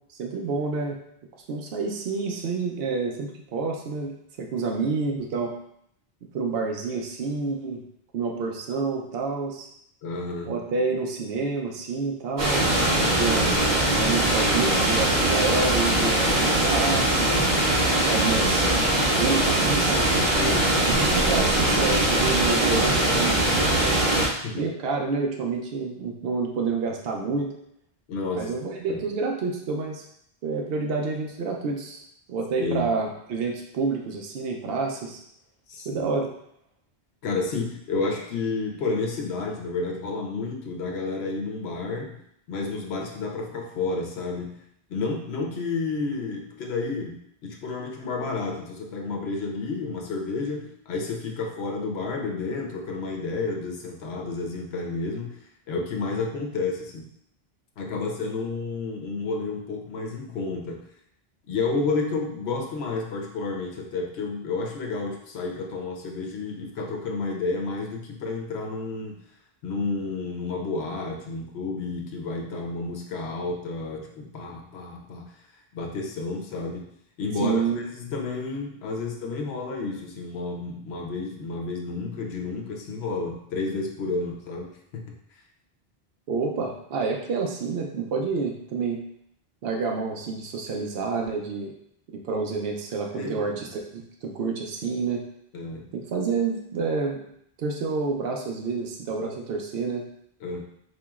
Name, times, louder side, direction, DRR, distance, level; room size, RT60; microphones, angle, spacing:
voice 1, 0.2-1.0 1.5-5.5 6.3-7.8 8.1-9.7 10.5-12.7 13.2-13.7 14.0-17.3 18.1-18.7 19.2-20.1 20.9-24.0 24.5-27.5 28.3-30.0 30.4-32.0 32.3-35.2 35.9-36.3 77.4-77.8 86.3-89.0 89.6-91.7 92.3-95.2 95.9-97.2 97.6-100.0, right 4 dB, 75° right, 1 dB, 0.8 m, -28 dB
voice 2, 10.0-10.6 20.3-20.7 24.4-24.7 28.1-28.5 28.9-29.0 32.6-32.9 35.7-36.0 37.2-42.2 42.5-44.6 44.9-55.4 55.7-57.1 57.8-60.8 61.5-69.2 69.6-75.3 75.7-76.9 77.2-85.2 93.1-93.6 95.5-95.9 100.4-100.6, left 3 dB, 90° left, 1 dB, 0.9 m, -31 dB
sound 1, 12.4-24.3, right 1 dB, 45° right, 1.2 m, -21 dB
4.3 x 3.0 x 2.3 m, 0.71 s
omnidirectional pair, 1.0 m